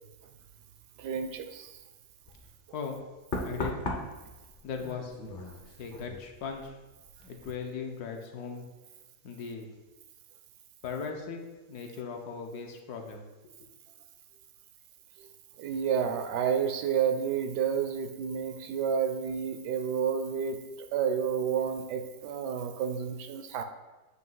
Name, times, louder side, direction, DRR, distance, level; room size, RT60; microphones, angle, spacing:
voice 1, 1.0-1.8 15.2-15.3 15.6-20.6 20.9-23.6, right 7 dB, 75° right, 8 dB, 1.1 m, -30 dB
Knock, 2.3-2.5 3.3-6.8 7.1-7.4, left 1 dB, 45° left, 0.7 m, -38 dB
voice 2, 3.4-3.9 4.6-5.1 5.8-6.8 7.2-8.6 9.2-9.7 10.8-11.4 11.7-13.2 13.6-13.7, left 5 dB, 65° left, 3 dB, 1.2 m, -38 dB
7.9 x 2.8 x 5.4 m, 1.2 s
omnidirectional pair, 1.9 m